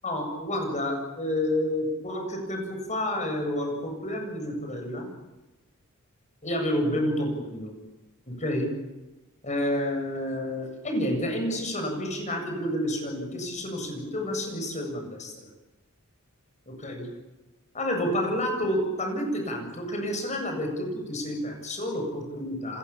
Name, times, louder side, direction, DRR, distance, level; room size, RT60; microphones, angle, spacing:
voice 1, 0.0-5.1 6.4-7.7 8.3-8.7 9.4-15.3 16.7-17.1 17.7-22.8, left 1 dB, 35° left, 4 dB, 8.0 m, -29 dB
30.0 x 26.0 x 7.4 m, 1.0 s
head